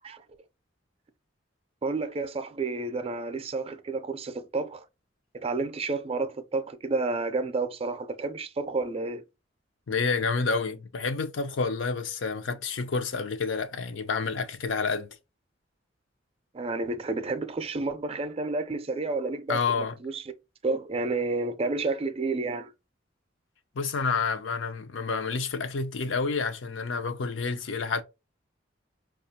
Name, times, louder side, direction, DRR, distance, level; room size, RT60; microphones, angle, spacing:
voice 1, 1.8-4.9 5.3-9.2 16.5-20.2 20.6-22.7, right 3 dB, 30° right, 0.4 m, -30 dB
voice 2, 9.9-15.1 19.5-19.9 23.7-28.0, left 4 dB, 90° left, 0.6 m, -29 dB
4.9 x 2.3 x 2.7 m
head